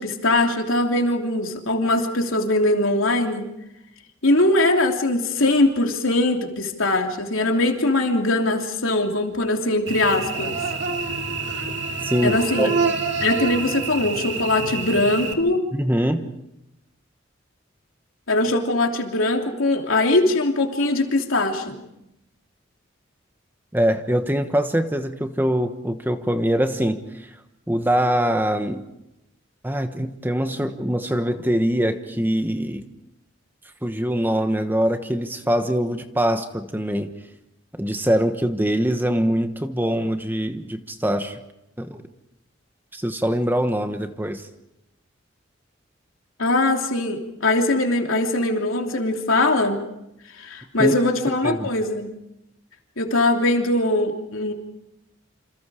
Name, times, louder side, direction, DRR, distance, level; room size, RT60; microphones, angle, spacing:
voice 1, 0.0-3.5 4.2-10.6 12.2-12.7 13.2-15.6 18.3-21.8 46.4-49.8 50.4-52.1 53.0-54.5, left 2 dB, 85° left, 3 dB, 3.2 m, -21 dB
Cricket / Buzz, 9.9-15.3, right 4 dB, 60° right, 2.6 m, -27 dB
voice 2, 12.0-12.8 15.7-16.2 23.7-27.3 27.7-28.8 29.6-32.8 33.8-37.1 37.8-41.4 41.8-42.0 42.9-44.4 50.8-50.9 51.4-51.7, equal, 10° right, 8 dB, 1.1 m, -23 dB
28.0 x 27.0 x 5.0 m, 0.87 s
head